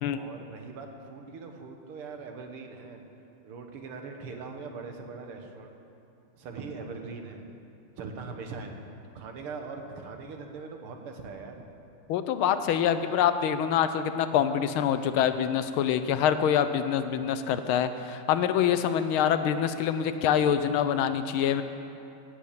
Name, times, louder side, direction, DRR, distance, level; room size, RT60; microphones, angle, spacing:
voice 1, 0.1-3.0 3.4-5.7 6.4-7.5 8.0-8.8 9.1-11.6, right 4 dB, 90° right, 4 dB, 2.1 m, -41 dB
voice 2, 12.1-21.6, left 9 dB, 80° left, 10 dB, 1.5 m, -25 dB
16.0 x 6.4 x 8.4 m, 2.6 s
omnidirectional pair, 2.4 m